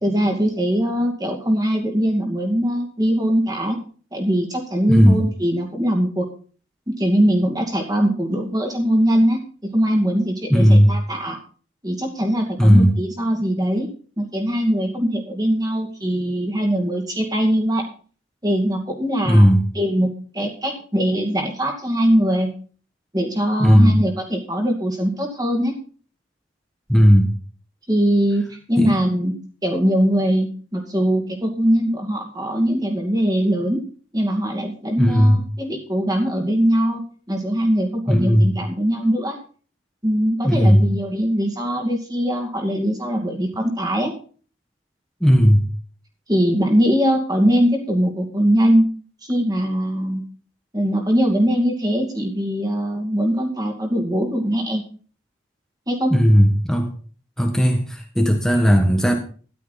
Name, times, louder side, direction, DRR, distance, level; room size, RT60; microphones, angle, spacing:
voice 1, 0.0-3.8 4.1-6.3 7.0-11.4 11.8-13.9 14.2-17.8 18.4-19.5 19.7-22.5 23.1-25.7 27.9-28.4 28.7-29.3 29.6-33.8 34.1-37.0 37.3-39.4 40.0-44.1 46.3-48.8 49.2-50.2 50.7-54.8 55.9-56.1, equal, 20° right, 2 dB, 2.3 m, -21 dB
voice 2, 4.9-5.2 10.5-10.9 12.6-12.9 19.2-19.6 23.6-24.0 26.9-27.3 28.8-28.9 35.0-35.4 38.1-38.5 40.4-40.8 45.2-45.7 56.1-56.9 57.4-59.2, equal, 5° left, 2 dB, 1.3 m, -15 dB
13.5 x 11.5 x 4.1 m, 0.41 s
head